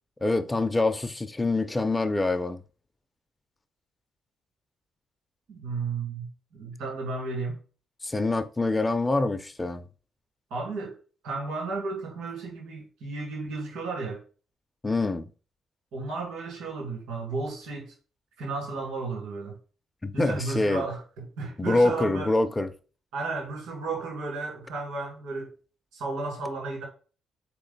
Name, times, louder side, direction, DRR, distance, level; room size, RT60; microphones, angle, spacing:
voice 1, 0.2-2.6 8.0-9.8 14.8-15.2 20.0-20.8 21.6-22.7, left 2 dB, 20° left, 0.4 m, -25 dB
voice 2, 5.5-7.6 10.5-11.0 11.2-14.2 15.9-17.9 18.4-19.6 20.1-22.3 23.1-25.5 25.9-26.8, right 3 dB, 90° right, 1.9 m, -33 dB
3.8 x 2.9 x 3.9 m
cardioid pair, 90°, 0 cm